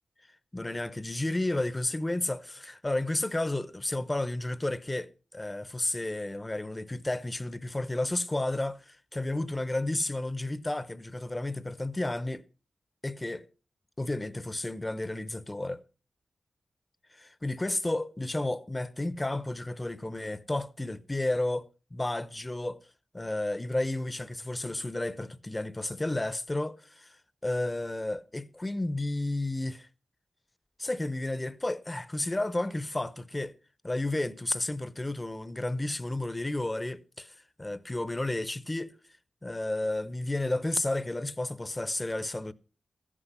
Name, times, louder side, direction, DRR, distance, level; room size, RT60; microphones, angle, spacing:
voice 1, 0.5-12.4 13.0-13.5 14.0-15.8 17.1-22.8 23.1-27.2 27.4-29.9 30.8-33.5 33.8-38.9 39.4-42.5, left 2 dB, 20° left, 0.7 m, -32 dB
14.5 x 9.9 x 5.5 m
wide cardioid pair, 95°, 0 cm